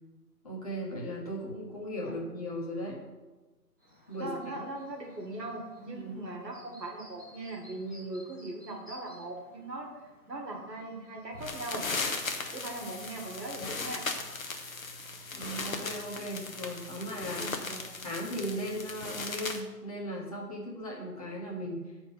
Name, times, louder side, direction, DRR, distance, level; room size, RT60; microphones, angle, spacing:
voice 1, 0.4-3.0 4.1-4.6 5.9-6.3 15.3-17.5 18.0-21.8, equal, 20° left, -4 dB, 1.2 m, -37 dB
Chirp tweet, 3.8-11.8, equal, 10° right, 1.0 m, -57 dB
voice 2, 4.2-9.9 10.3-11.9 12.5-14.0 17.4-17.8, right 2 dB, 80° right, 1 dB, 2.1 m, -40 dB
sound 1, 11.3-19.6, left 3 dB, 55° left, 1.1 m, -37 dB
8.0 x 4.5 x 5.3 m, 1.2 s
figure-of-eight pair, 160°, 49 cm